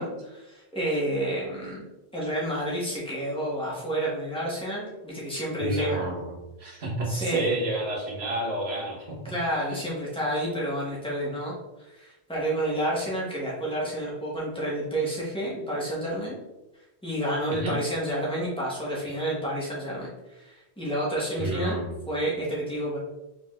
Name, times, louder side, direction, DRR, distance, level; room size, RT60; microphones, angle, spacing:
voice 1, 0.0-1.9 2.1-6.1 7.1-7.5 9.2-16.3 17.0-21.8 22.1-23.0, right 1 dB, 5° left, -6 dB, 1.3 m, -30 dB
voice 2, 5.6-6.3 6.6-9.2 17.5-17.8 19.1-19.2 21.4-21.9, right 2 dB, 70° right, -3 dB, 1.5 m, -30 dB
4.9 x 3.8 x 2.4 m, 1.0 s
omnidirectional pair, 1.1 m